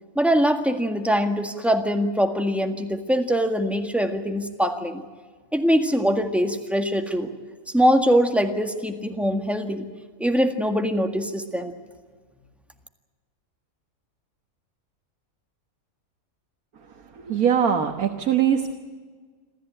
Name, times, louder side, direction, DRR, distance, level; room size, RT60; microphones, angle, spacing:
voice 1, 0.2-5.0 5.5-7.3 7.7-9.9 10.2-11.7, equal, ahead, 5 dB, 1.7 m, -22 dB
voice 2, 17.2-18.7, right 8 dB, 90° right, 3 dB, 1.8 m, -21 dB
27.0 x 14.5 x 8.9 m, 1.5 s
omnidirectional pair, 1.5 m